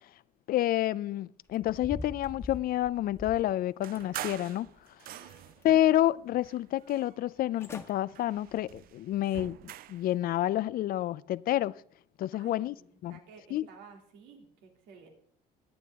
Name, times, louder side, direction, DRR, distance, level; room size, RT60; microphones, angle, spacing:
voice 1, 0.5-4.7 5.6-9.6 9.9-11.8 12.2-12.7 13.0-13.2 13.5-13.7, left 13 dB, 60° left, 0.4 m, -29 dB
sound 1, 1.5-3.5 4.0-4.8 5.2-6.0 6.4-6.5 7.3-7.4 7.6-7.9 8.4-8.6 9.1-9.2, left 2 dB, 15° left, 1.4 m, -45 dB
sound 2, 3.8-5.7 6.4-7.5 7.9-10.1, right 14 dB, 60° right, 0.4 m, -44 dB
voice 2, 5.1-5.4 12.3-15.1, right 5 dB, 85° right, 2.8 m, -54 dB
21.0 x 8.6 x 3.6 m
cardioid pair, 110°, 17 cm